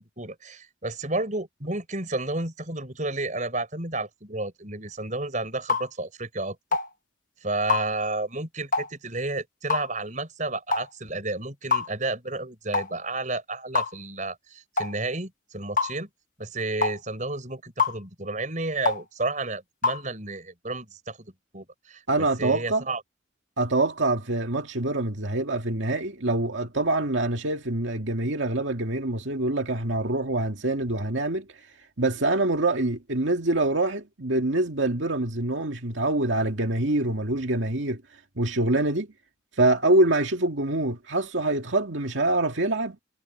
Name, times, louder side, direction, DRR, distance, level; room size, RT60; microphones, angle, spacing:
voice 1, 0.0-6.6 7.4-16.1 16.4-23.0, right 2 dB, 40° right, 5.5 m, -31 dB
sound 1, 5.7-5.9 6.7-6.9 7.7-7.9 8.7-8.9 9.7-9.9 10.7-10.9 11.7-11.9 12.7-12.9 13.7-13.9 14.8-14.9 15.8-15.9 16.8-17.0 17.8-18.0 18.9-19.0 19.8-20.0, left 4 dB, 45° left, 1.3 m, -24 dB
voice 2, 22.1-22.8 23.6-31.5 32.0-38.0 38.4-39.1 39.6-43.0, right 2 dB, 85° right, 2.1 m, -25 dB
head